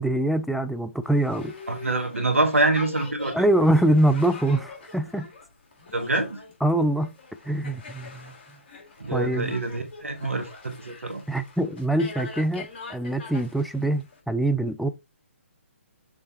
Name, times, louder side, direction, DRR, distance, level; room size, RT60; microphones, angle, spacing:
voice 1, 0.0-1.5 3.3-5.3 6.6-7.1 7.5-8.3 9.1-9.5 11.3-14.9, right 1 dB, ahead, 0.3 m, -24 dB
Boat Water vehicle, 1.0-14.2, left 3 dB, 45° left, 3.0 m, -43 dB
voice 2, 1.7-3.4 5.9-6.4 9.0-11.2, right 2 dB, 75° right, 1.7 m, -25 dB
6.6 x 3.4 x 4.4 m
figure-of-eight pair, 135°, 7 cm